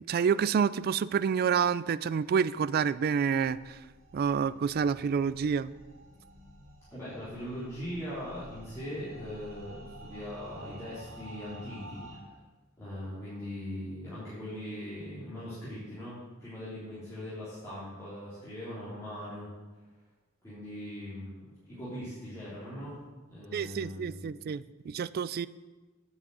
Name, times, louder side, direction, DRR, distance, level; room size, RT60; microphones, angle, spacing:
voice 1, 0.1-3.8 4.1-5.7 23.5-25.5, right 6 dB, 50° right, 17 dB, 0.3 m, -28 dB
sound 1, 3.4-12.2, right 1 dB, 70° right, 2.0 m, -50 dB
voice 2, 6.9-12.4 12.8-19.5 20.4-21.4 21.7-23.0 23.3-24.3, equal, 15° left, -12 dB, 3.6 m, -40 dB
9.5 x 6.4 x 7.9 m, 1.3 s
head